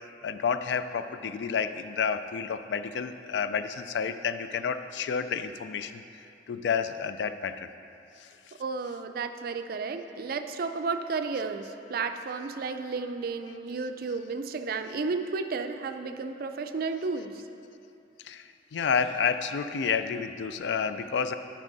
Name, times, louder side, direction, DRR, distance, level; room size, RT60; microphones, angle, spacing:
voice 1, 0.2-6.0 6.5-7.7 8.2-8.3 18.2-21.3, left 6 dB, 75° left, 11 dB, 0.4 m, -30 dB
voice 2, 8.6-17.4, right 4 dB, 55° right, 8 dB, 0.4 m, -32 dB
10.5 x 5.5 x 4.0 m, 2.8 s
head